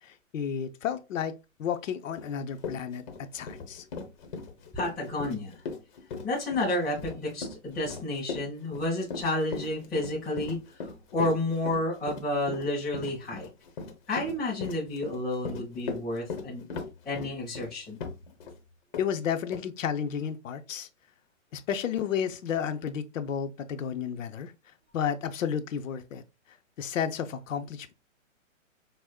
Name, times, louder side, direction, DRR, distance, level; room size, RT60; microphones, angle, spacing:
voice 1, 0.0-3.9 19.0-20.9 21.5-24.5 24.9-27.9, left 8 dB, 75° left, 0.6 m, -32 dB
Run, 2.2-2.3 2.6-18.6 18.9-19.1 19.5-19.6, left 4 dB, 35° left, 0.7 m, -38 dB
voice 2, 4.7-5.6 6.2-13.5 14.1-16.6 17.0-18.0, left 1 dB, ahead, 0.3 m, -31 dB
4.9 x 2.0 x 2.2 m
hypercardioid pair, 135°, 39 cm